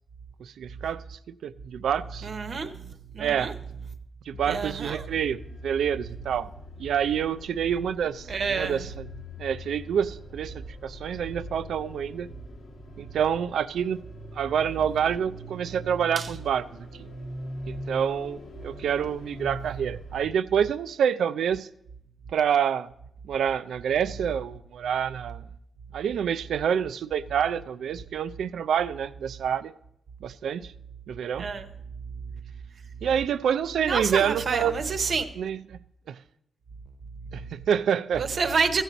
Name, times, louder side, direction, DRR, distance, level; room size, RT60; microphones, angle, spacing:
voice 1, 0.4-2.3 3.2-3.5 4.3-6.5 6.8-10.5 10.8-12.3 13.0-14.0 14.4-16.7 17.0-17.1 17.7-21.7 22.3-22.9 23.2-25.4 25.9-29.7 30.2-30.7 31.1-31.5 33.0-34.7 35.4-35.8 36.1-36.2 37.3-38.2, right 8 dB, 85° right, 0.3 m, -27 dB
voice 2, 2.2-2.8 3.1-3.5 4.5-5.0 8.3-8.8 16.2-16.3 31.4-31.6 33.8-35.2 38.2-38.8, right 5 dB, 50° right, 0.8 m, -28 dB
sound 1, 4.3-20.3, left 1 dB, 65° left, 1.0 m, -42 dB
14.5 x 7.5 x 3.9 m
wide cardioid pair, 135°, 0 cm